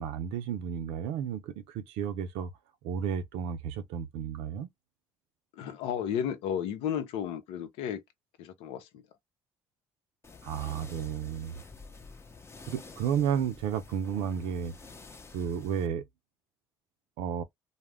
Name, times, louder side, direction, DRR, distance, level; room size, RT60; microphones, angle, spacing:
voice 1, 0.0-2.5 2.8-4.7 10.4-11.6 12.7-14.7 15.3-16.0 17.2-17.4, right 8 dB, 90° right, 0.6 m, -32 dB
voice 2, 5.5-8.0 8.4-9.0, left 9 dB, 85° left, 0.6 m, -33 dB
sound 1, 10.2-15.9, left 4 dB, 25° left, 0.7 m, -50 dB
2.5 x 2.1 x 3.3 m
supercardioid pair, 85°, 10 cm